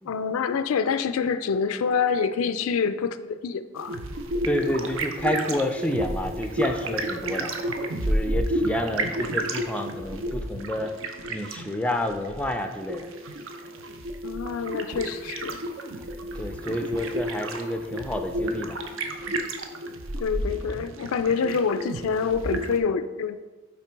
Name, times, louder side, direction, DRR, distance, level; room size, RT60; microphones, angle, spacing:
voice 1, 0.0-4.0 14.2-15.6 20.2-23.4, left 6 dB, 80° left, 11 dB, 0.4 m, -26 dB
sound 1, 3.8-22.8, right 1 dB, 65° right, 0.6 m, -31 dB
voice 2, 4.4-7.5 8.0-10.9 11.3-13.1 16.3-18.8, left 1 dB, 5° left, 6 dB, 0.4 m, -29 dB
5.9 x 4.4 x 4.5 m, 1.3 s
head